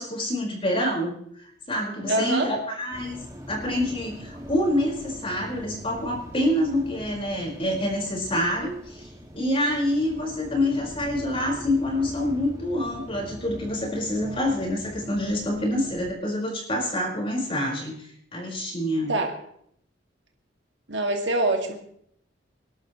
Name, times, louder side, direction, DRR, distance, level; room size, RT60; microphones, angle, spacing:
voice 1, 0.0-3.2 3.5-19.1, left 1 dB, 30° left, -2 dB, 5.0 m, -27 dB
voice 2, 2.1-2.5 19.1-19.3 20.9-21.8, right 2 dB, 65° right, 3 dB, 2.3 m, -24 dB
sound 1, 2.9-16.1, equal, 15° right, 2.2 m, -42 dB
27.0 x 12.0 x 3.2 m, 0.68 s
head